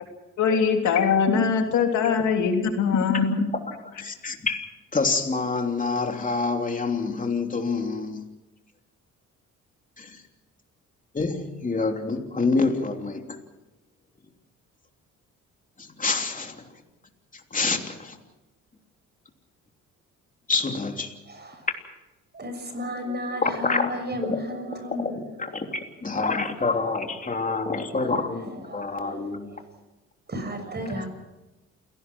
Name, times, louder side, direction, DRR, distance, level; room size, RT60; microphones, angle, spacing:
voice 1, 0.4-3.5, left 6 dB, 75° left, 3.2 m, -22 dB
voice 2, 4.0-8.3 10.0-10.2 11.1-13.4 15.8-16.6 17.3-18.2 20.5-21.2 23.4-23.9 24.2-24.4 25.0-25.2 25.5-29.5, left 3 dB, 25° left, 3.2 m, -27 dB
voice 3, 21.3-21.7 22.3-25.8 26.1-29.7 30.3-31.1, equal, 35° right, 6.5 m, -35 dB
28.5 x 17.5 x 6.2 m
cardioid pair, 90°, 30 cm